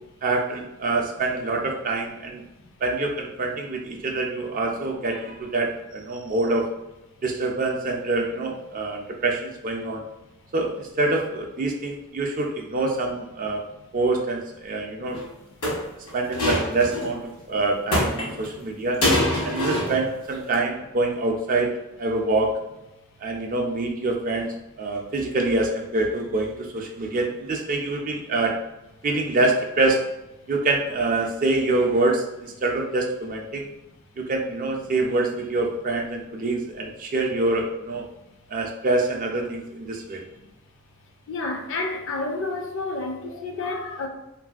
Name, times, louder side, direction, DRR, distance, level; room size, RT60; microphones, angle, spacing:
voice 1, 0.2-2.4 2.8-6.7 7.2-10.0 10.5-13.6 13.9-15.2 16.1-19.0 19.4-21.7 22.0-22.6 23.2-28.6 29.0-30.0 30.5-33.7 34.2-38.0 38.5-40.2, right 2 dB, 40° right, 0.4 m, -25 dB
sound 1, 15.1-15.2 15.6-17.1 17.9-18.6 19.0-20.1 20.3-20.5, left 1 dB, 85° left, 1.2 m, -24 dB
voice 2, 41.3-44.1, left 3 dB, 60° left, 0.4 m, -30 dB
3.1 x 2.6 x 2.3 m
head